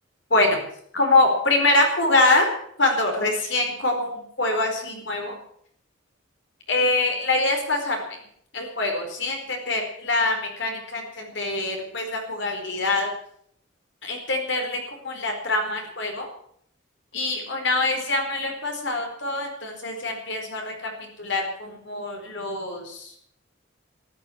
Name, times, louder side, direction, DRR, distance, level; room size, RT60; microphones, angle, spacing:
voice 1, 0.3-0.6 0.9-2.5 2.8-5.4 6.7-8.0 8.5-13.1 14.0-14.8 15.0-16.3 17.1-20.7 21.2-23.1, left 2 dB, 60° left, 3 dB, 4.6 m, -24 dB
13.5 x 12.5 x 8.6 m, 0.66 s
head